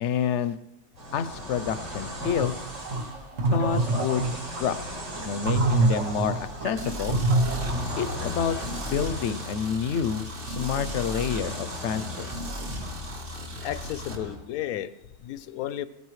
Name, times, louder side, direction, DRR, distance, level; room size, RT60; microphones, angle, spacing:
voice 1, 0.0-0.6 1.1-2.5 3.5-4.3 4.6-4.8 5.2-7.2 8.0-8.6 8.8-12.3, left 7 dB, 65° left, 13 dB, 0.8 m, -28 dB
sound 1, 0.9-14.3, equal, 85° right, 4.3 m, -39 dB
sound 2, 2.2-8.2, right 2 dB, 60° right, 1.5 m, -26 dB
sound 3, 6.8-14.2, equal, 40° right, 1.7 m, -36 dB
voice 2, 13.6-15.9, left 12 dB, 85° left, 15 dB, 1.1 m, -33 dB
18.5 x 14.0 x 3.1 m, 0.95 s
omnidirectional pair, 1.5 m